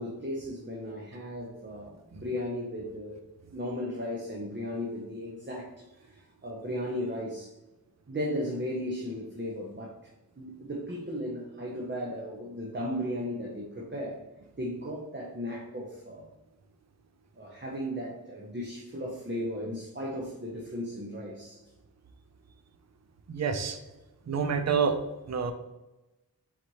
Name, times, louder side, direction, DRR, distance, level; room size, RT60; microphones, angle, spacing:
voice 1, 0.0-3.2 3.5-7.5 8.1-10.1 10.4-14.2 14.6-16.3 17.4-21.6, equal, 30° right, -3 dB, 0.9 m, -36 dB
voice 2, 23.3-23.8 24.3-25.0 25.3-25.5, right 6 dB, 45° right, 8 dB, 0.6 m, -27 dB
4.2 x 4.1 x 3.1 m, 1.0 s
cardioid pair, 45°, 37 cm